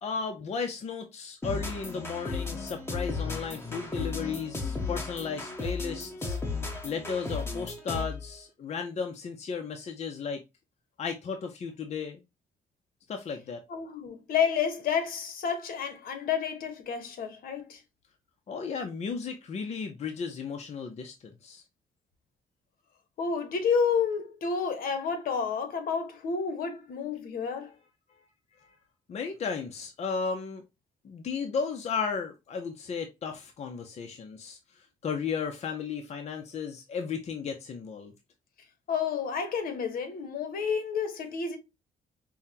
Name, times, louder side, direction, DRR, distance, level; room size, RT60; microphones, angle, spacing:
voice 1, 0.0-6.4 6.8-10.4 11.0-12.2 13.1-13.6 18.5-21.6 28.6-28.8 29.1-30.6 31.0-38.1, left 5 dB, 45° left, 0.7 m, -34 dB
sound 1, 1.4-8.3, left 3 dB, 15° left, 1.1 m, -35 dB
voice 2, 13.7-17.8 23.2-27.7 38.9-41.6, left 6 dB, 75° left, 1.1 m, -30 dB
5.6 x 2.2 x 2.7 m
cardioid pair, 105°, 15 cm